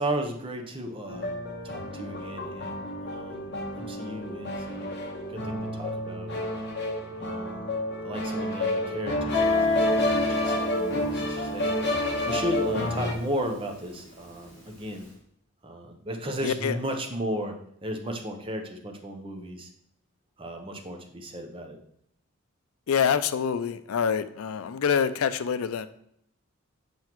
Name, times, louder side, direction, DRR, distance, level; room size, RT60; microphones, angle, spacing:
voice 1, 0.0-1.3 1.6-5.0 5.3-6.6 7.2-7.7 8.0-11.8 12.3-15.1 15.6-19.7 20.4-21.8, equal, 25° right, 3 dB, 0.7 m, -35 dB
sound 1, 1.1-13.1, left 1 dB, 50° left, 1.1 m, -30 dB
Guitar, 9.3-14.8, left 3 dB, 5° left, 3.0 m, -30 dB
voice 2, 16.4-16.8 22.9-25.9, left 7 dB, 85° left, 13 dB, 0.4 m, -26 dB
7.7 x 5.5 x 3.0 m, 0.73 s
head